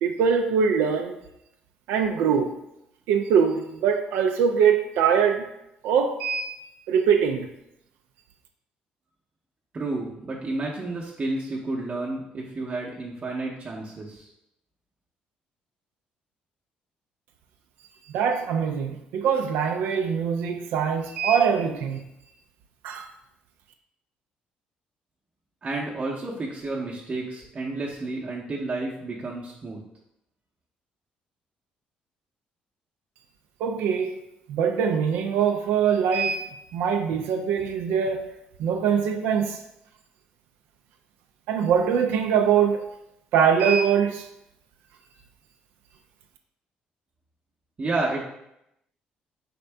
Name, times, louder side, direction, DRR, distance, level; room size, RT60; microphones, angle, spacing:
voice 1, 0.0-1.2 1.9-2.5 3.1-5.5 5.8-6.6 6.9-7.5 18.1-22.0 22.8-23.1 33.6-34.2 34.5-38.3 38.6-39.6 41.5-42.9 43.3-44.3, right 7 dB, 85° right, 0.3 m, -23 dB
voice 2, 9.7-14.3 25.6-29.8 47.8-48.2, right 2 dB, 35° right, 0.7 m, -31 dB
4.3 x 2.6 x 3.3 m
supercardioid pair, 80°, 3 cm